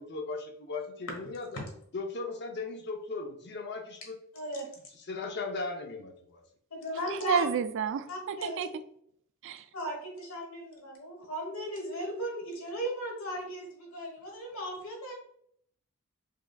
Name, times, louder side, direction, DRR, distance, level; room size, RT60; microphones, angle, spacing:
voice 1, 0.0-1.5 1.9-4.1 5.1-6.4, left 3 dB, 50° left, 3 dB, 0.7 m, -37 dB
voice 2, 1.2-1.6 4.3-4.7 6.7-7.4 8.1-8.7 9.7-15.1, equal, 65° left, 0 dB, 1.3 m, -37 dB
voice 3, 7.1-8.7 9.4-9.7, right 7 dB, 60° right, 12 dB, 0.3 m, -30 dB
4.9 x 3.3 x 2.3 m, 0.67 s
head